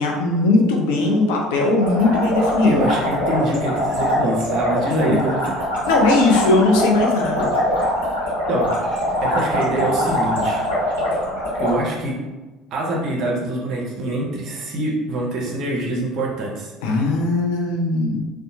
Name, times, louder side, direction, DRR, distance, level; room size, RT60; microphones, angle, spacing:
voice 1, 0.0-2.9 4.9-5.2 5.9-7.5 16.8-18.2, left 2 dB, 60° left, 0 dB, 0.4 m, -19 dB
sound 1, 1.8-11.7, equal, 85° left, 1.1 m, -23 dB
voice 2, 2.6-5.6 8.5-8.9 9.2-10.6 11.6-12.2 12.7-16.7, right 1 dB, 50° right, -2 dB, 0.6 m, -25 dB
sound 2, 8.7-9.9, equal, 15° left, 0.6 m, -32 dB
2.7 x 2.1 x 2.7 m, 1.2 s
figure-of-eight pair, 60°, 0 cm